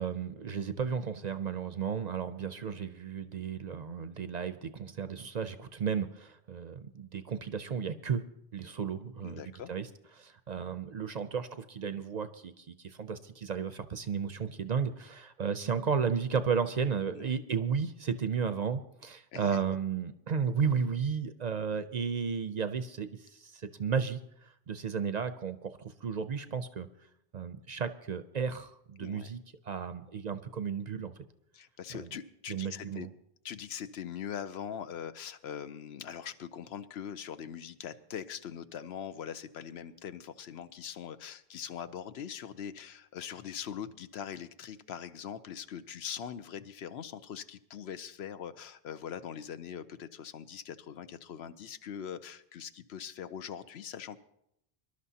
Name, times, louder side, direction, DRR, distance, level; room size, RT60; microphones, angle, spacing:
voice 1, 0.0-8.2 8.5-9.9 10.1-26.9 27.3-29.4 29.6-31.1 31.9-32.1 32.5-33.1, right 6 dB, 50° right, 11 dB, 0.6 m, -33 dB
voice 2, 9.2-9.7 17.1-17.3 19.3-19.5 29.0-29.3 31.5-33.1 33.4-54.2, left 8 dB, 80° left, 11 dB, 0.9 m, -42 dB
24.5 x 11.5 x 2.8 m, 0.79 s
omnidirectional pair, 1.1 m